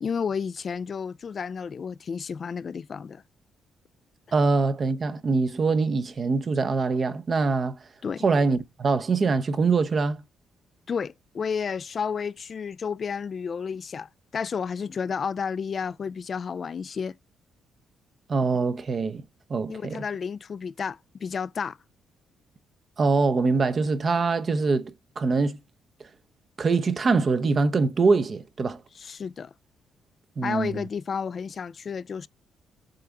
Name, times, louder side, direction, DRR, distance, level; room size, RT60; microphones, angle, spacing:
voice 1, 0.0-3.2 8.0-8.2 10.9-17.1 19.7-21.8 29.0-29.5 30.4-32.3, left 6 dB, 45° left, 0.3 m, -31 dB
voice 2, 4.3-7.8 8.2-10.2 18.3-19.2 19.5-20.0 23.0-25.6 26.6-28.8 30.4-30.8, right 4 dB, 40° right, 0.8 m, -24 dB
7.8 x 3.4 x 3.7 m
cardioid pair, 90°, 0 cm